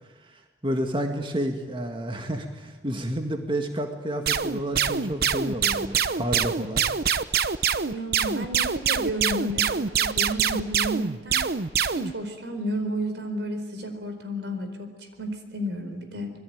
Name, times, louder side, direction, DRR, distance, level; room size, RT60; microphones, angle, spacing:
voice 1, 0.6-6.8, equal, 30° right, 4 dB, 1.9 m, -30 dB
sound 1, 4.3-12.1, right 7 dB, 60° right, 0.8 m, -25 dB
voice 2, 7.9-11.5 11.9-16.3, equal, 85° right, 7 dB, 4.5 m, -32 dB
26.5 x 21.0 x 9.4 m, 1.2 s
head